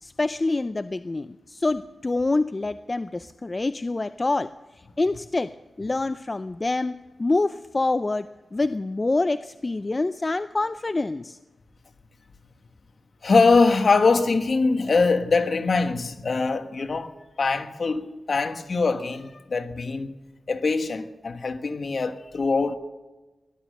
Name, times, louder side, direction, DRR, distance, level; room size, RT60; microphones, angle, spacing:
voice 1, 0.0-4.5 5.0-5.5 5.8-11.4, left 2 dB, 35° left, 0.5 m, -26 dB
voice 2, 13.2-17.1 17.4-20.1 20.5-22.8, left 4 dB, 60° left, 1.5 m, -22 dB
18.5 x 11.5 x 6.5 m
cardioid pair, 60°, 0 cm